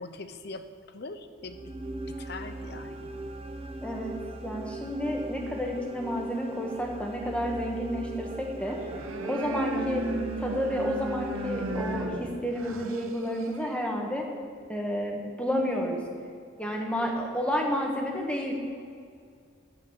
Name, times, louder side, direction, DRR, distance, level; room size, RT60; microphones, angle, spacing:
voice 1, 0.0-1.7 2.1-3.2, left 3 dB, 50° left, 10 dB, 0.7 m, -42 dB
sound 1, 1.4-12.7, right 2 dB, 30° right, 0.6 m, -40 dB
voice 2, 3.8-4.2 4.4-8.8 9.2-10.1 10.4-14.2 14.7-16.0 16.6-18.5, equal, 5° left, 0 dB, 1.4 m, -30 dB
sound 2, 8.6-13.9, right 2 dB, 90° right, 0.9 m, -35 dB
9.6 x 8.4 x 7.3 m, 2.2 s
head